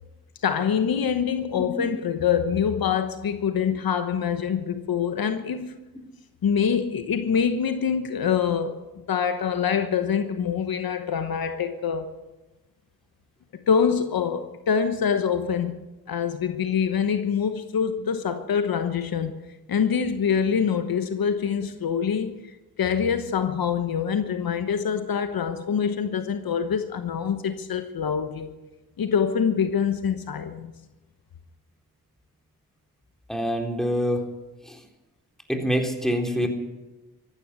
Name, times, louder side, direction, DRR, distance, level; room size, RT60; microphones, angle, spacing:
voice 1, 0.4-5.8 6.4-8.8 9.1-12.1 13.5-15.8 16.1-19.3 19.7-28.5 29.0-30.7, left 7 dB, 70° left, 9 dB, 1.1 m, -25 dB
voice 2, 1.6-1.9 33.3-34.3 34.7-34.8 35.5-36.5, equal, ahead, 2 dB, 3.7 m, -26 dB
14.5 x 12.0 x 8.1 m, 1.1 s
supercardioid pair, 45°, 36 cm